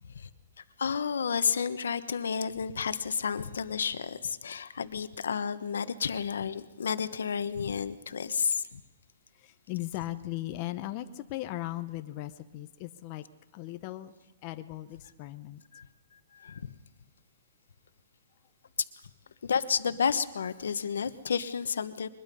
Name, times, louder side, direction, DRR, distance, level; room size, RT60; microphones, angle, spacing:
voice 1, 0.6-8.8 15.7-15.9 16.1-16.7 19.4-22.1, left 6 dB, 85° left, 12 dB, 1.1 m, -31 dB
voice 2, 9.4-13.2 13.5-14.1 14.4-15.6, left 16 dB, 30° left, 9 dB, 0.7 m, -38 dB
23.0 x 21.0 x 5.4 m, 1.1 s
hypercardioid pair, 170°, 0 cm